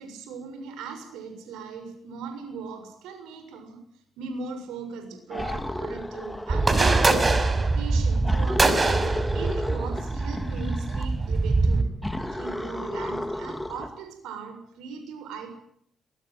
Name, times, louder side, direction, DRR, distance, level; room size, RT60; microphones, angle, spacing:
voice 1, 0.0-3.8 4.2-7.2 7.7-11.9 12.3-15.5, right 5 dB, 75° right, 7 dB, 6.8 m, -38 dB
sound 1, 5.3-7.1 8.2-11.1 12.0-14.0, left 1 dB, 10° left, 3.9 m, -33 dB
sound 2, 6.5-11.8, right 3 dB, 35° right, 5.5 m, -23 dB
23.5 x 22.5 x 9.3 m, 0.66 s
hypercardioid pair, 40°, 0 cm